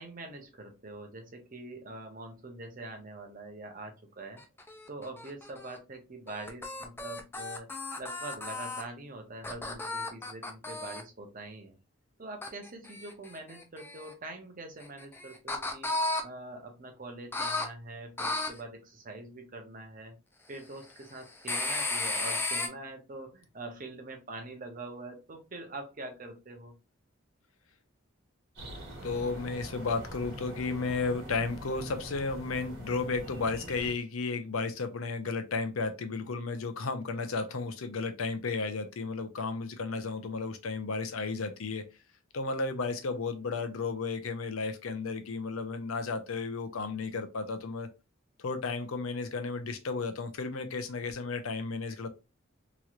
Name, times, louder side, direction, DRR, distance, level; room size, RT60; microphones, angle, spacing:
voice 1, 0.0-4.4 4.9-11.8 12.2-15.9 16.2-20.2 20.5-26.7, right 2 dB, 40° right, 0.8 m, -44 dB
sound 1, 4.4-5.8 6.3-8.8 9.4-11.0 12.4-14.1 14.8-16.2 17.3-17.7 18.2-18.5 21.4-22.7, left 2 dB, 10° left, 0.4 m, -34 dB
sound 2, 28.5-33.9, right 1 dB, 60° right, 1.4 m, -44 dB
voice 2, 29.0-41.8 42.3-47.9 48.4-52.1, left 4 dB, 90° left, 0.6 m, -33 dB
3.0 x 3.0 x 2.4 m
head